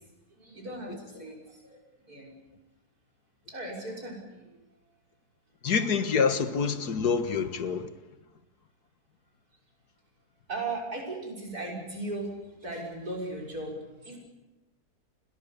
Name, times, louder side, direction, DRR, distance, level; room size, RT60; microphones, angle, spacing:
voice 1, 0.4-1.8 2.1-2.3 3.5-4.2 10.5-14.2, right 2 dB, 70° right, 6.8 m, -37 dB
voice 2, 5.6-7.9, left 5 dB, 85° left, 2.0 m, -26 dB
30.0 x 22.0 x 7.1 m
omnidirectional pair, 1.7 m